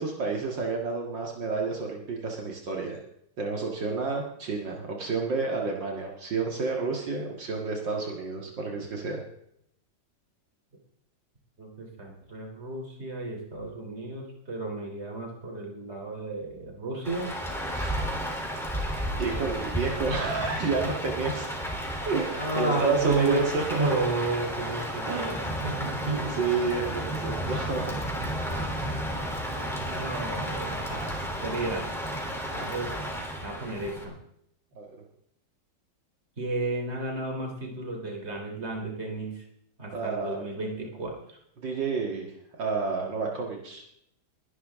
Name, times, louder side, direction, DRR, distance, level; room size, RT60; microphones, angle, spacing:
voice 1, 0.0-3.0 3.4-9.2 17.7-18.0 19.2-21.5 22.1-24.0 25.1-25.6 26.1-27.9 34.7-34.9 39.9-40.4 41.6-42.3 42.6-43.8, right 4 dB, 70° right, 0 dB, 2.6 m, -30 dB
voice 2, 11.6-17.3 22.2-26.3 28.4-28.7 29.5-31.8 32.5-32.9 33.4-34.1 36.4-39.4 39.8-41.4, right 2 dB, 30° right, 1 dB, 3.7 m, -33 dB
Rain, 17.0-34.0, equal, ahead, 3.2 m, -33 dB
22.5 x 11.5 x 3.7 m, 0.74 s
omnidirectional pair, 2.1 m